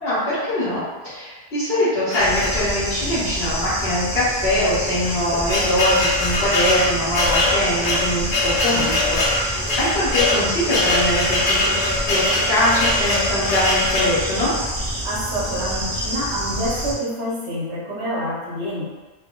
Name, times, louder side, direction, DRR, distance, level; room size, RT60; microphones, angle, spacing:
voice 1, 0.0-14.5, left 1 dB, 60° left, -12 dB, 1.3 m, -23 dB
sound 1, 2.1-3.0 3.7-3.8 4.1-4.2 4.9-14.2, left 2 dB, 85° left, 1.0 m, -22 dB
Bird / Insect, 2.2-16.9, equal, 35° right, 0.5 m, -28 dB
sound 2, 7.8-13.8, left 2 dB, 35° left, 0.6 m, -37 dB
voice 2, 15.0-18.9, equal, 70° right, -5 dB, 1.0 m, -27 dB
2.9 x 2.0 x 3.5 m, 1.3 s
omnidirectional pair, 1.1 m